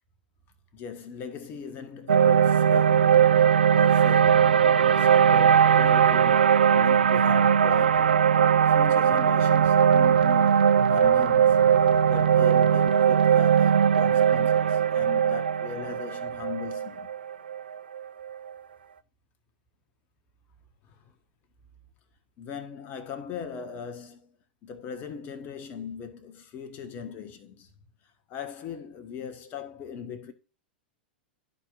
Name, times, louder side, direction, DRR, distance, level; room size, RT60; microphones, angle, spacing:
voice 1, 0.7-8.2 8.7-11.7 12.1-17.1 20.9-21.0 22.4-24.3 24.6-27.7 28.3-30.3, left 6 dB, 35° left, 1.3 m, -39 dB
sound 1, 2.1-18.3, right 8 dB, 75° right, 0.4 m, -20 dB
13.0 x 4.5 x 2.5 m
figure-of-eight pair, 95°, 5 cm